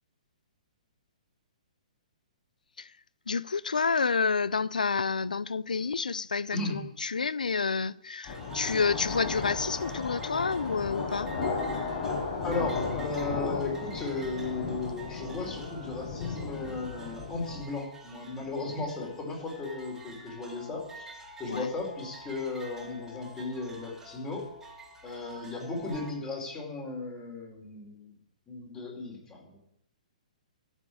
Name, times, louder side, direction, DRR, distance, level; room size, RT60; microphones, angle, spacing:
voice 1, 3.3-11.3 21.5-21.7, left 5 dB, 85° left, 0.4 m, -29 dB
sound 1, 8.2-26.1, right 1 dB, 10° right, 3.4 m, -48 dB
sound 2, 8.3-17.6, left 4 dB, 40° left, 6.2 m, -35 dB
voice 2, 12.4-21.1 21.4-24.4 25.0-28.1 28.5-29.6, left 3 dB, 20° left, 4.9 m, -36 dB
14.5 x 6.4 x 8.6 m
hypercardioid pair, 130°, 4 cm